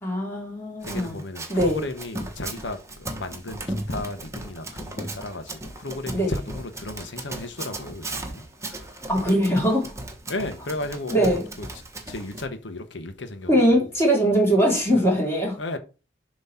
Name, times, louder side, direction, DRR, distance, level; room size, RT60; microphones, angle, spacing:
voice 1, 0.0-1.2 1.5-1.8 6.1-6.3 9.1-9.9 11.1-11.5 13.5-15.6, equal, 15° left, 2.8 m, -21 dB
voice 2, 0.8-9.0 10.3-11.7 12.1-13.9 14.9-15.0 15.6-15.8, left 2 dB, 75° left, 1.0 m, -34 dB
Run, 0.8-12.4, right 1 dB, 15° right, 1.1 m, -36 dB
7.2 x 3.1 x 5.6 m
head